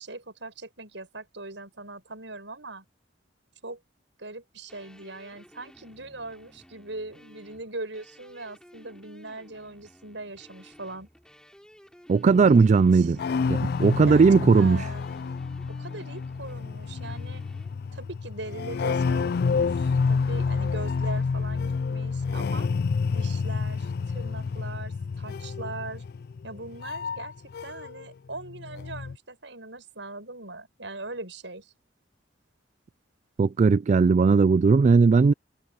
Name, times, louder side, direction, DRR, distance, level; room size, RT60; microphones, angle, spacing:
voice 1, 0.0-2.8 3.6-3.8 4.2-11.1 12.3-13.1 14.0-14.2 14.5-15.1 15.8-17.4 17.9-22.7 23.1-26.0 26.4-27.3 27.6-31.7, right 2 dB, 90° right, 6.4 m, -40 dB
sound 1, 4.7-17.8, equal, 5° left, 5.7 m, -54 dB
voice 2, 12.1-13.2 13.5-14.9 33.4-35.3, right 4 dB, 40° right, 0.3 m, -18 dB
sound 2, 12.3-28.0 28.3-29.2, left 5 dB, 60° left, 0.4 m, -29 dB
head